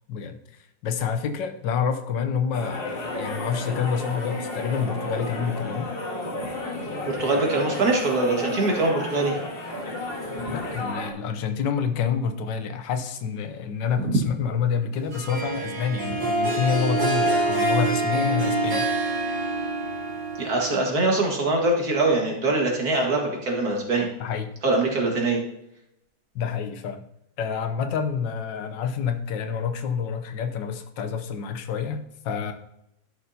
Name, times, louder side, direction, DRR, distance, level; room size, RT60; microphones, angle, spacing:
voice 1, 0.8-5.9 9.8-10.0 10.3-18.9 24.2-24.5 26.3-27.1 27.4-32.5, left 6 dB, 85° left, 8 dB, 1.5 m, -28 dB
sound 1, 2.5-11.1, left 2 dB, 35° left, 1.4 m, -32 dB
voice 2, 7.0-9.4 14.0-14.2 20.4-24.1 24.6-25.4, right 2 dB, 60° right, 0 dB, 2.2 m, -23 dB
Harp, 15.1-20.9, right 2 dB, 85° right, 2.8 m, -25 dB
11.5 x 6.6 x 2.7 m, 0.79 s
omnidirectional pair, 1.9 m